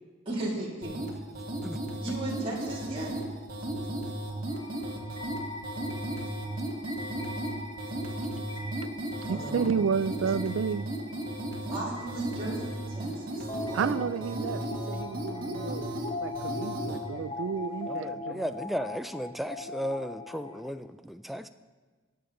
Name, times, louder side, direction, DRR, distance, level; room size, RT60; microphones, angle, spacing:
voice 1, 0.3-1.0 2.0-3.1 9.3-9.9 11.7-13.9 16.8-17.2, right 1 dB, 30° right, 2.6 m, -36 dB
sound 1, 0.8-17.0, right 1 dB, 50° right, 1.8 m, -35 dB
sound 2, 4.5-20.7, left 2 dB, 25° left, 0.8 m, -41 dB
voice 2, 9.3-10.9 13.7-14.6 14.9-15.9 16.2-18.4, right 6 dB, 85° right, 0.3 m, -31 dB
voice 3, 17.9-21.5, equal, ahead, 0.3 m, -35 dB
21.5 x 7.2 x 3.8 m
head